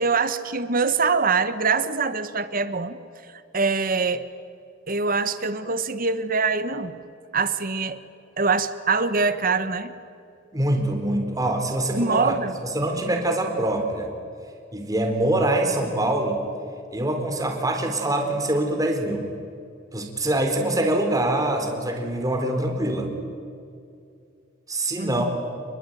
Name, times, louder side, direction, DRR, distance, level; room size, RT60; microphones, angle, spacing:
voice 1, 0.0-3.0 3.5-4.2 4.9-7.0 7.3-8.0 8.4-9.9 12.0-12.6 25.0-25.2, right 4 dB, 50° right, 12 dB, 1.4 m, -24 dB
voice 2, 10.5-12.3 12.6-14.1 14.7-16.4 16.9-19.3 19.9-23.1 24.7-25.2, right 1 dB, 20° right, 4 dB, 4.0 m, -24 dB
29.0 x 21.5 x 9.4 m, 2.5 s
head